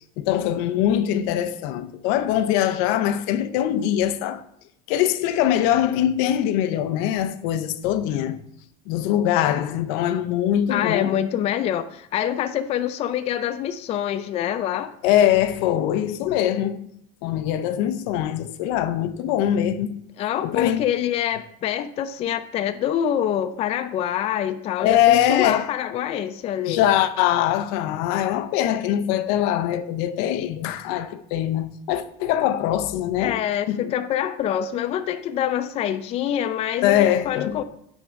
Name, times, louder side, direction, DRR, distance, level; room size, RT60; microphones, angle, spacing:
voice 1, 0.2-4.4 4.9-8.4 8.9-11.1 15.0-16.8 17.2-20.0 20.4-20.9 24.8-25.7 26.7-33.9 36.8-37.6, left 11 dB, 80° left, 0.6 m, -22 dB
voice 2, 10.7-14.9 20.2-26.8 33.2-37.6, left 10 dB, 35° left, 0.4 m, -25 dB
8.8 x 3.7 x 5.1 m
cardioid pair, 140°, 18 cm